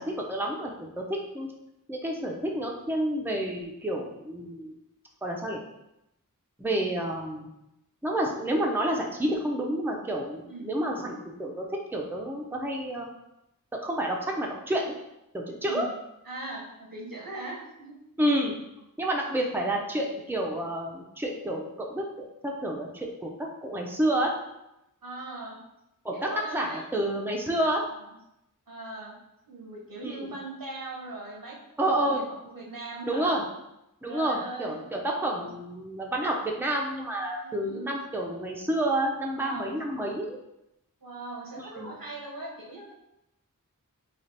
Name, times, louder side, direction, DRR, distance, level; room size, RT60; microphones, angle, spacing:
voice 1, 0.0-1.5 1.9-4.7 5.2-5.6 6.6-7.5 8.0-13.1 13.7-15.0 15.3-15.9 18.2-18.6 19.0-24.3 26.0-27.8 30.0-30.3 31.8-32.2 33.1-33.4 34.0-40.4 41.6-41.9, right 1 dB, 5° right, 0 dB, 0.6 m, -29 dB
voice 2, 10.5-10.8 15.6-15.9 16.2-17.9 25.0-25.6 26.1-26.8 27.9-28.1 28.7-29.2 29.5-31.6 31.9-33.3 34.1-34.8 35.1-35.5 37.4-38.0 39.4-39.8 41.0-42.9, right 2 dB, 90° right, -3 dB, 1.0 m, -40 dB
3.3 x 2.4 x 4.0 m, 0.86 s
wide cardioid pair, 45°, 33 cm